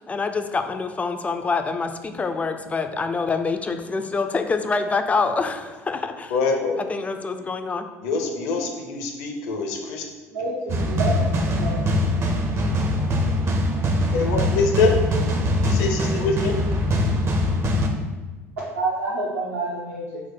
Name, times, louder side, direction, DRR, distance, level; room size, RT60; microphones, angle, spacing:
voice 1, 0.0-6.4 6.8-7.9, left 4 dB, 20° left, 7 dB, 0.3 m, -26 dB
voice 2, 6.3-6.8 8.0-10.0 14.1-14.9 15.6-16.5, left 4 dB, 60° left, 3 dB, 0.6 m, -24 dB
voice 3, 10.3-11.8 18.7-20.2, right 2 dB, 75° right, -7 dB, 0.6 m, -28 dB
sound 1, 10.7-17.9, left 1 dB, 35° right, 0.5 m, -22 dB
4.4 x 2.1 x 4.1 m, 1.3 s
figure-of-eight pair, 60°, 8 cm